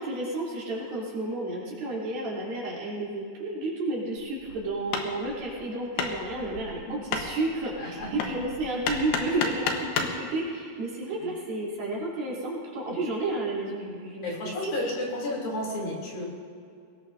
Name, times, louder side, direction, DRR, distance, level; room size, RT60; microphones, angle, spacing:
voice 1, 0.0-14.7, right 2 dB, 65° right, -6 dB, 5.2 m, -31 dB
Hammer, 4.2-10.2, left 5 dB, 85° left, 3.4 m, -33 dB
voice 2, 7.8-8.1 11.2-11.3 14.2-16.2, left 1 dB, 60° left, -3 dB, 4.8 m, -32 dB
23.5 x 19.5 x 2.7 m, 2.4 s
omnidirectional pair, 4.7 m